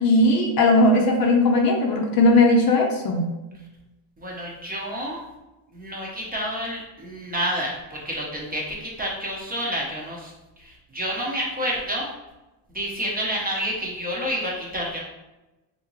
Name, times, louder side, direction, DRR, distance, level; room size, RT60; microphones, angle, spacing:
voice 1, 0.0-3.2, left 2 dB, 50° left, 2 dB, 0.6 m, -18 dB
voice 2, 4.2-5.2 5.7-10.3 10.6-12.1 12.7-15.0, equal, 20° right, -3 dB, 0.8 m, -29 dB
3.5 x 2.7 x 3.1 m, 1.0 s
cardioid pair, 120°, 46 cm